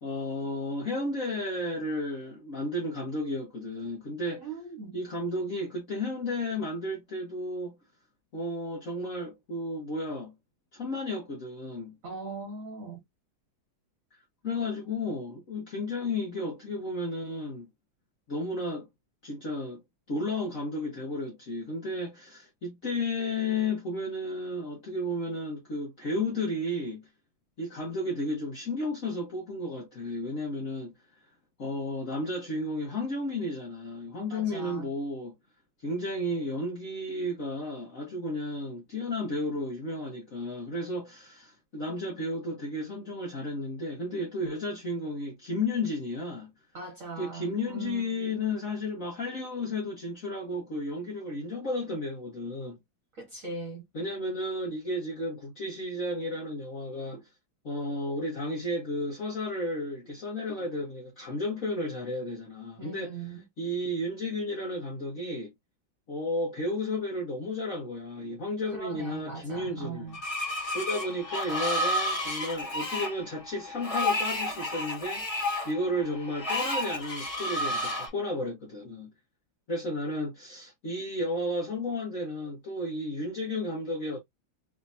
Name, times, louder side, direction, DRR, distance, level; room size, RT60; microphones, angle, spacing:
voice 1, 0.0-4.5 4.9-7.8 8.3-10.3 10.7-12.0 14.4-17.7 18.3-18.9 19.2-19.8 20.1-27.1 27.6-30.9 31.6-35.3 35.8-46.5 47.2-52.8 53.9-57.3 57.6-63.1 63.6-65.5 66.1-70.1 70.7-79.1 79.7-84.2, left 1 dB, 45° left, 1.3 m, -33 dB
voice 2, 4.4-5.0 12.0-13.0 34.3-34.9 46.7-48.3 53.1-53.9 62.8-63.4 68.7-70.2, right 4 dB, 45° right, 1.5 m, -40 dB
Screech, 70.1-78.1, left 1 dB, 20° left, 1.3 m, -31 dB
3.7 x 3.3 x 2.6 m
omnidirectional pair, 2.3 m